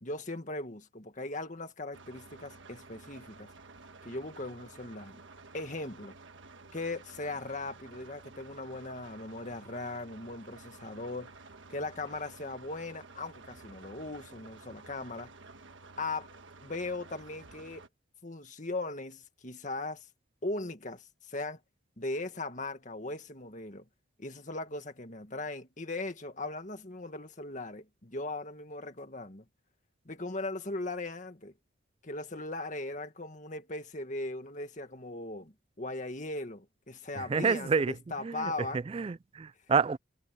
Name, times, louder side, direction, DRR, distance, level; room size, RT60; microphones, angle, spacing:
voice 1, 0.0-3.5 4.1-5.2 5.5-6.1 6.7-11.3 11.7-15.3 16.0-16.3 16.6-17.8 18.2-20.1 20.4-21.6 22.0-23.9 24.2-29.4 30.1-31.5 32.0-38.8, left 2 dB, 40° left, 1.9 m, -39 dB
sound 1, 1.9-17.9, right 3 dB, 70° right, 1.5 m, -52 dB
voice 2, 37.3-37.9 38.2-38.5 38.9-40.0, right 5 dB, 30° right, 0.3 m, -28 dB
head